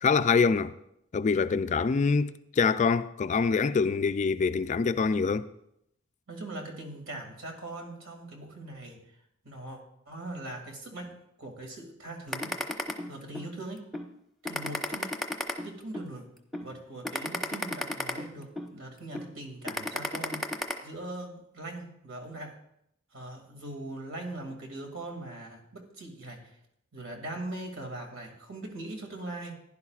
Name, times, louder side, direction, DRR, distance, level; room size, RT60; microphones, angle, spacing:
voice 1, 0.0-0.7 1.1-5.5, left 5 dB, 35° left, 0.3 m, -25 dB
voice 2, 6.3-9.0 9.4-9.8 10.1-12.6 13.1-13.8 14.4-15.1 15.6-16.2 16.6-22.6 23.1-26.6 26.9-29.5, right 2 dB, 70° right, 2.4 m, -41 dB
sound 1, 12.3-13.5 13.9-14.1 14.5-16.1 16.5-16.7 17.0-18.7 19.1-19.3 19.7-20.7, left 1 dB, ahead, 0.9 m, -32 dB
15.5 x 11.0 x 2.4 m
head